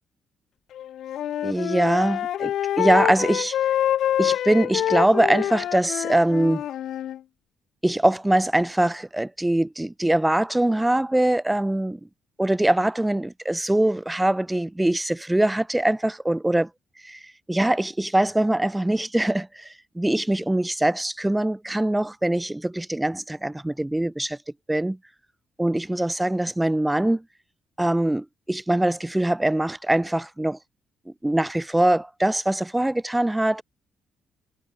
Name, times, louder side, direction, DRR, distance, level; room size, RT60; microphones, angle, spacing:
Wind instrument woodwind instrument, 0.7-7.2, left 11 dB, 75° left, 0.4 m, -26 dB
voice 1, 1.4-3.6 4.2-6.6 7.8-12.0 12.4-16.7 17.0-24.4 24.7-25.0 25.6-27.2 27.8-30.6 31.2-33.6, right 1 dB, 10° right, 0.4 m, -23 dB
cardioid pair, 90°, 0 cm